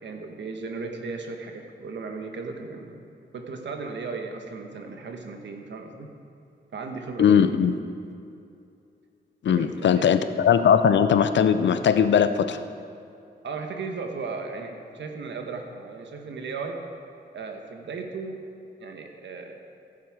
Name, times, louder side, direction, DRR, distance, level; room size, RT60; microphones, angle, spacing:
voice 1, 0.0-3.0 3.3-6.1 6.7-7.5 9.5-10.3 13.4-16.8 17.3-18.4 18.8-19.6, right 4 dB, 90° right, 4 dB, 1.2 m, -36 dB
voice 2, 7.2-7.7 9.4-12.6, left 8 dB, 85° left, 11 dB, 0.6 m, -19 dB
15.5 x 7.6 x 4.8 m, 2.6 s
wide cardioid pair, 150°, 18 cm